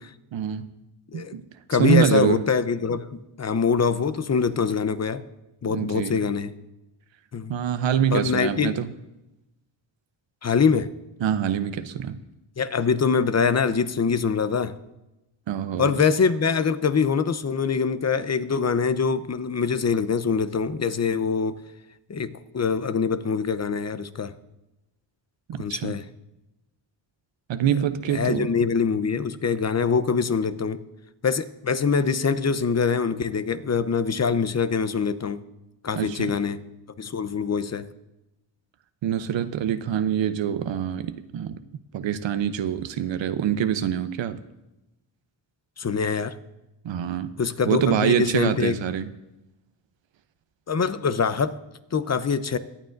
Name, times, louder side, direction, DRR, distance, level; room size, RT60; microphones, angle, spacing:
voice 1, 0.3-0.7 1.1-1.4 1.8-2.4 5.7-6.2 7.5-8.9 11.2-12.2 15.5-15.9 25.5-25.9 27.5-28.5 36.0-36.3 39.0-41.6 41.9-44.4 46.8-47.3 47.7-49.1, right 9 dB, 65° right, 11 dB, 0.8 m, -25 dB
voice 2, 1.7-5.2 5.6-6.5 7.3-7.5 8.1-8.8 10.4-10.9 12.6-14.7 15.8-21.6 22.1-24.3 25.6-26.0 27.7-27.8 28.1-30.8 31.2-35.4 35.8-36.6 37.0-37.9 45.8-46.4 47.4-48.8 50.7-51.5 51.9-52.6, left 5 dB, 30° left, 13 dB, 0.8 m, -24 dB
23.5 x 8.9 x 2.6 m, 0.96 s
cardioid pair, 60°, 49 cm